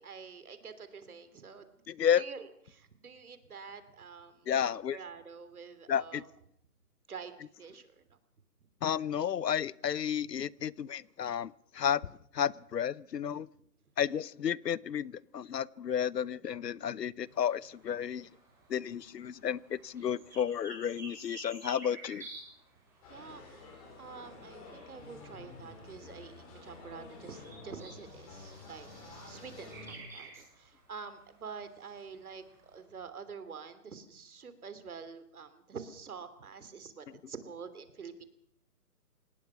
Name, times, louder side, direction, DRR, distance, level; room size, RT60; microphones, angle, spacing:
voice 1, 0.0-1.7 2.2-6.3 7.1-7.3 7.6-8.2 23.1-38.2, right 5 dB, 65° right, 11 dB, 3.2 m, -47 dB
voice 2, 1.9-2.2 4.5-5.0 5.9-6.2 8.8-12.0 12.3-13.5 14.0-18.3 18.7-22.3, left 9 dB, 90° left, 23 dB, 0.9 m, -32 dB
sound 1, 17.3-32.8, right 3 dB, 5° right, 6.4 m, -54 dB
sound 2, 23.0-30.0, left 3 dB, 25° left, 5.9 m, -50 dB
26.5 x 18.5 x 5.9 m, 0.66 s
hypercardioid pair, 165°, 47 cm